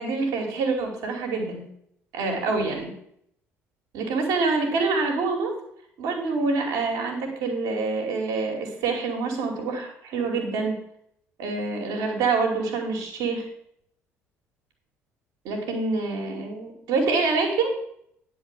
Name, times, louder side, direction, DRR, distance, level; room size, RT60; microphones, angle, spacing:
voice 1, 0.0-1.6 2.1-2.9 3.9-5.5 6.0-10.8 11.4-13.4 15.4-17.7, right 4 dB, 60° right, 0 dB, 2.6 m, -26 dB
10.0 x 4.6 x 7.4 m, 0.70 s
figure-of-eight pair, 50°, 7 cm